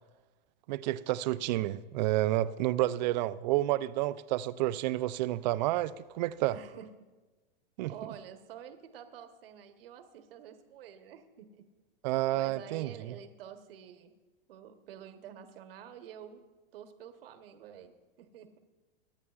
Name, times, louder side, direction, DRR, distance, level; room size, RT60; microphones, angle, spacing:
voice 1, 0.7-6.6 7.8-7.9 12.0-12.9, right 15 dB, 50° right, 0.4 m, -30 dB
voice 2, 6.5-6.9 7.8-11.6 12.3-14.1 14.5-16.4 16.7-17.9 18.2-18.6, right 9 dB, 70° right, 1.1 m, -49 dB
23.0 x 9.7 x 2.4 m
hypercardioid pair, 125°, 30 cm